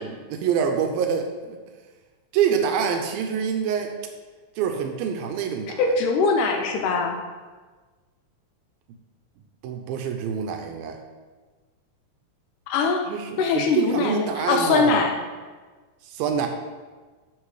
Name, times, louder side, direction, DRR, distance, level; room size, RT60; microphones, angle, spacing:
voice 1, 0.0-1.6 2.3-3.9 4.6-5.9 9.6-11.0 13.1-15.0 16.0-16.5, right 7 dB, 85° right, 4 dB, 2.5 m, -26 dB
voice 2, 5.8-7.2 12.7-13.0 13.4-15.2, left 4 dB, 80° left, 3 dB, 2.0 m, -22 dB
10.0 x 3.7 x 4.7 m, 1.4 s
omnidirectional pair, 4.1 m